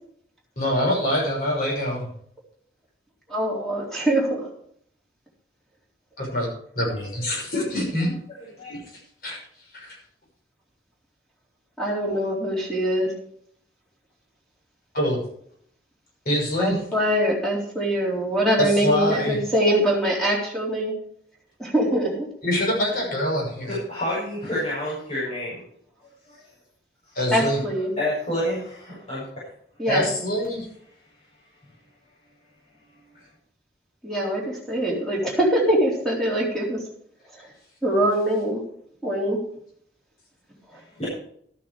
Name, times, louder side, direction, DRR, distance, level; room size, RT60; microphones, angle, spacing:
voice 1, 0.6-2.1 6.2-6.5 6.7-8.1 9.2-9.4 9.7-10.0 14.9-15.2 16.2-16.8 18.6-19.4 22.4-23.8 27.1-27.6 29.9-30.7, left 1 dB, 55° left, -1 dB, 6.2 m, -24 dB
voice 2, 3.3-4.5 11.8-13.1 16.6-20.9 21.6-22.1 27.3-27.9 29.8-30.1 34.0-36.8 37.8-38.6 39.0-39.4, right 1 dB, ahead, -4 dB, 3.8 m, -23 dB
voice 3, 23.7-25.6 26.3-26.4 28.0-29.3 41.0-41.1, left 1 dB, 35° left, -9 dB, 6.5 m, -29 dB
13.0 x 9.7 x 4.9 m, 0.65 s
head